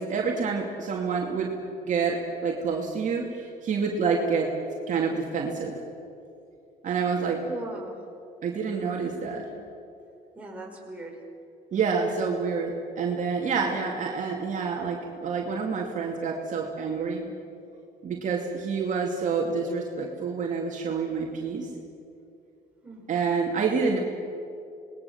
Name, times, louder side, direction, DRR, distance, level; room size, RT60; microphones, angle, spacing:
voice 1, 0.0-1.5 1.9-4.5 4.9-5.8 6.8-7.4 8.4-9.4 11.7-17.3 18.0-21.7 23.1-24.0, right 5 dB, 45° right, -1 dB, 2.5 m, -28 dB
voice 2, 7.4-8.1 9.2-9.5 10.4-11.2 22.8-23.1, right 2 dB, 5° right, -2 dB, 5.4 m, -39 dB
27.0 x 20.5 x 7.2 m, 2.7 s
cardioid pair, 110°, 17 cm